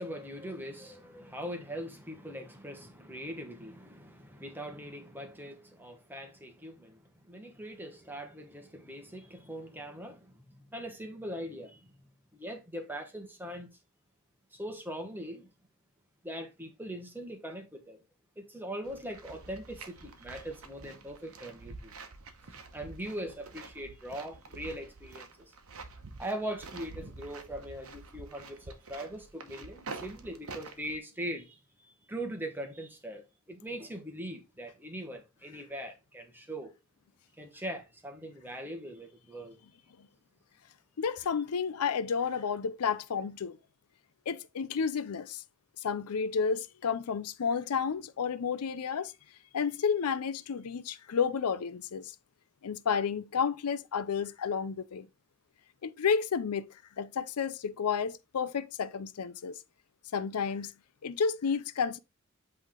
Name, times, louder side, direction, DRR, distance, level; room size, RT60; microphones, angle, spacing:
voice 1, 0.0-7.0 7.2-11.9 12.3-13.7 14.5-15.5 16.2-18.0 18.4-21.9 22.7-25.5 26.2-31.6 32.1-36.7 37.4-39.6, right 1 dB, 10° right, 1.1 m, -41 dB
sound 1, 18.8-31.0, right 3 dB, 65° right, 1.0 m, -47 dB
voice 2, 41.0-43.6 44.3-45.4 45.8-49.1 49.5-52.1 52.6-55.1 55.8-56.7 57.0-59.6 60.1-60.7 61.0-62.0, left 6 dB, 80° left, 0.5 m, -31 dB
8.1 x 3.2 x 3.7 m
head